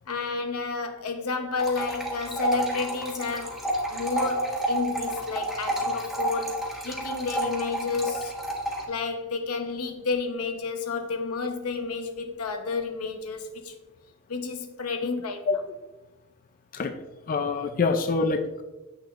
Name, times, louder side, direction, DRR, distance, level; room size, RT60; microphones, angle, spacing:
voice 1, 0.1-3.6 3.9-8.3 8.9-13.8 14.3-15.5, left 4 dB, 90° left, 6 dB, 0.9 m, -31 dB
sound 1, 1.6-8.8, right 1 dB, ahead, 1.4 m, -30 dB
voice 2, 17.3-18.6, left 4 dB, 40° left, 7 dB, 0.4 m, -25 dB
8.1 x 6.5 x 2.4 m, 1.1 s
head